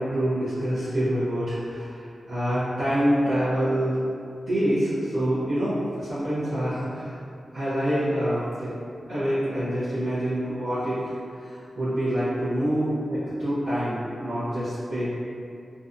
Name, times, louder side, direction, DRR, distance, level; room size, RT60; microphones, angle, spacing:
voice 1, 0.0-4.0 4.5-7.2 7.5-8.7 9.1-11.0 11.4-15.1, equal, 75° right, -15 dB, 0.8 m, -26 dB
2.6 x 2.2 x 2.5 m, 2.5 s
wide cardioid pair, 115°, 0 cm